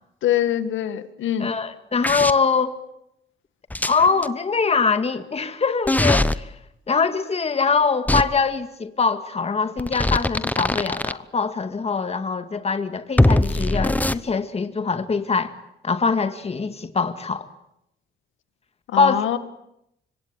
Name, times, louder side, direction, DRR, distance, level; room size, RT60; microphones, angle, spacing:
voice 1, 0.2-1.5 18.9-19.4, left 11 dB, 75° left, 2.0 m, -24 dB
voice 2, 1.4-2.8 3.8-6.5 6.9-15.5 15.8-17.5 19.0-19.2, left 5 dB, 30° left, 2.1 m, -23 dB
sound 1, 2.0-2.3 3.7-4.3 5.9-6.4 8.1-8.2 9.8-11.1 13.2-14.1, left 1 dB, 10° left, 1.0 m, -20 dB
25.5 x 25.0 x 9.1 m
cardioid pair, 90°, 20 cm